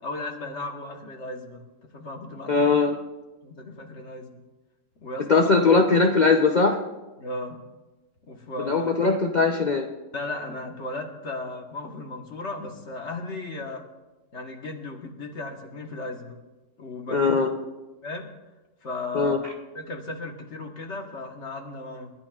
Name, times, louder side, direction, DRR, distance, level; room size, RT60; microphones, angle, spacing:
voice 1, 0.0-2.7 3.4-4.4 5.0-5.4 7.2-7.6 8.3-8.9 10.1-13.8 14.3-16.4 16.8-17.3 18.0-18.3 18.8-19.4 19.7-22.1, left 2 dB, 60° left, 3 dB, 1.6 m, -35 dB
voice 2, 2.5-3.0 5.3-6.8 8.7-9.9 17.1-17.5 19.1-19.4, left 4 dB, 40° left, 2 dB, 0.7 m, -20 dB
28.0 x 10.5 x 2.4 m, 1.1 s
omnidirectional pair, 1.3 m